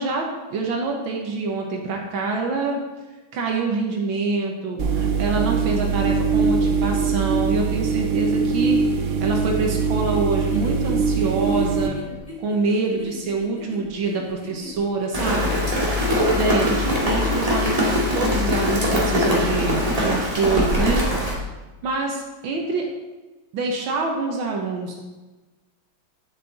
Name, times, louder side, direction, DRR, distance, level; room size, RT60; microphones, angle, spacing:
voice 1, 0.0-2.8 3.3-12.0 12.4-15.6 16.1-21.1 21.8-22.9 23.5-25.0, right 3 dB, 80° right, 0 dB, 1.9 m, -25 dB
sound 1, 4.8-11.9, right 5 dB, 60° right, 0.8 m, -22 dB
sound 2, 9.7-18.5, left 2 dB, 20° left, 2.1 m, -39 dB
Rain, 15.1-21.4, left 1 dB, 20° right, 2.1 m, -22 dB
10.0 x 7.4 x 4.1 m, 1.2 s
omnidirectional pair, 2.2 m